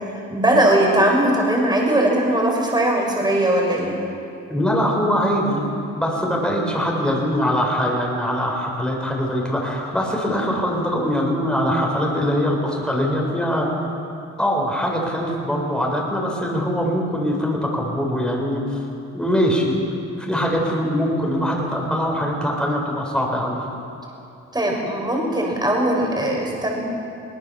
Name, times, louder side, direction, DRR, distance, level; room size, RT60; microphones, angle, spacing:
voice 1, 0.1-4.0 24.5-26.8, right 1 dB, 15° right, -1 dB, 6.3 m, -19 dB
voice 2, 4.5-5.7 5.9-13.7 14.4-18.8 19.1-19.7 20.2-23.6, equal, 5° left, -2 dB, 5.5 m, -22 dB
22.0 x 18.5 x 7.2 m, 2.7 s
cardioid pair, 90°, 30 cm